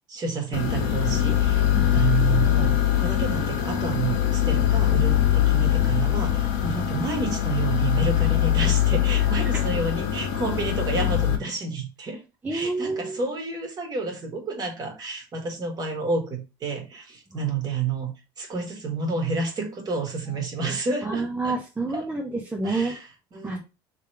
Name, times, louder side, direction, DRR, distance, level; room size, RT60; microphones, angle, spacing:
voice 1, 0.1-12.2 12.5-18.1 18.4-21.6 21.9-22.1 22.6-23.6, right 4 dB, 35° right, 2 dB, 1.7 m, -30 dB
sound 1, 0.5-11.4, left 11 dB, 80° left, 1.4 m, -22 dB
voice 2, 12.4-13.2 21.0-23.0 23.4-23.6, right 3 dB, 15° right, 0 dB, 0.7 m, -28 dB
3.5 x 3.2 x 4.6 m, 0.30 s
supercardioid pair, 115°, 12 cm